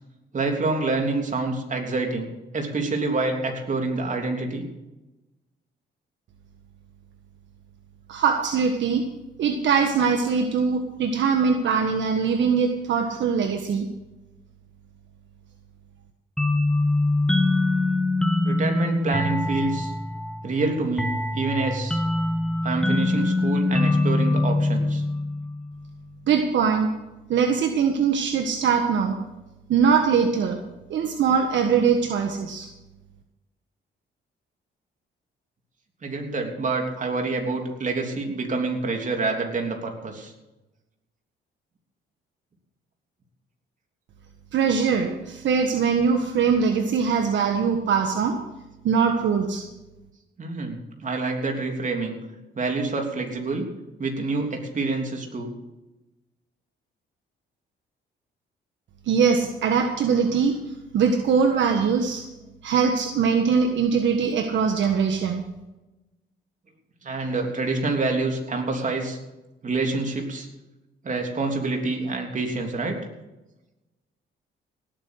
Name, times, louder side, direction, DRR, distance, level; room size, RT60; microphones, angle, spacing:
voice 1, 0.3-4.6 18.4-19.9 20.4-22.0 22.6-25.0 36.0-40.3 50.4-52.2 52.5-53.7 54.0-55.5 67.0-69.2 69.6-70.5 71.0-73.0, right 3 dB, 40° right, 2 dB, 3.3 m, -27 dB
voice 2, 8.1-9.0 9.4-13.9 26.3-26.9 27.3-29.2 29.7-30.6 30.9-32.7 44.5-48.4 48.8-49.6 59.1-60.6 60.9-62.2 62.6-65.4, right 6 dB, 70° right, 4 dB, 1.5 m, -22 dB
sound 1, 16.4-25.7, left 2 dB, 5° left, 1.2 m, -24 dB
18.0 x 8.7 x 6.4 m, 1.0 s
cardioid pair, 90°, 20 cm